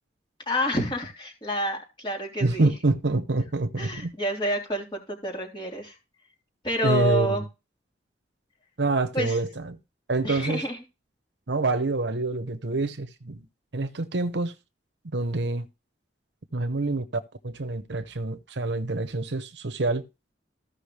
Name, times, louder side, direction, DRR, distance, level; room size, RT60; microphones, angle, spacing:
voice 1, 0.5-2.7 3.8-6.0 6.6-7.4 9.1-9.4 10.2-10.8, equal, 25° left, 3.3 m, -28 dB
voice 2, 2.4-4.1 6.8-7.4 8.8-9.8 10.1-10.6 11.5-13.5 13.7-14.5 15.1-15.7 16.5-17.1 17.4-20.0, right 2 dB, 70° right, 0.9 m, -26 dB
15.0 x 5.6 x 3.3 m
head